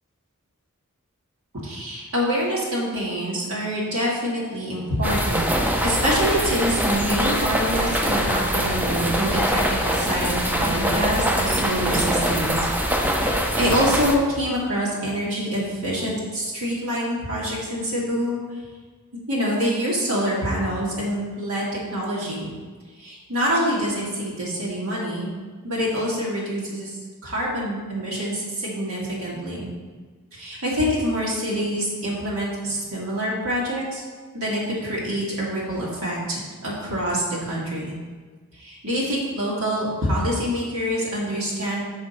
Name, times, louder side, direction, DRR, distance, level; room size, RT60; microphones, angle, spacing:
voice 1, 1.6-18.6 19.3-22.5 23.0-25.3 25.6-27.0 27.2-29.7 30.3-34.0 34.3-37.9 38.5-41.8, equal, 65° right, -6 dB, 2.4 m, -26 dB
sound 1, 5.0-14.2, equal, 10° right, 0.6 m, -23 dB
6.5 x 4.6 x 5.8 m, 1.4 s
head